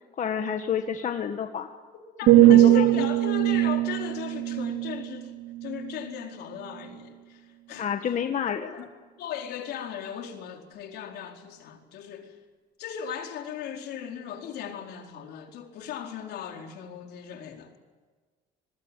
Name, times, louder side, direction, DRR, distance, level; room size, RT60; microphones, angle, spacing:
voice 1, 0.2-1.7 2.3-3.1 7.8-8.8, left 8 dB, 45° left, 5 dB, 1.8 m, -29 dB
voice 2, 2.2-5.3 5.6-8.2 8.7-8.9 9.2-12.4 12.8-17.7, left 8 dB, 75° left, 3 dB, 4.5 m, -37 dB
sound 1, 2.3-6.2 6.7-6.9, right 15 dB, 70° right, 1.2 m, -21 dB
25.5 x 20.5 x 9.1 m, 1.4 s
cardioid pair, 110°, 17 cm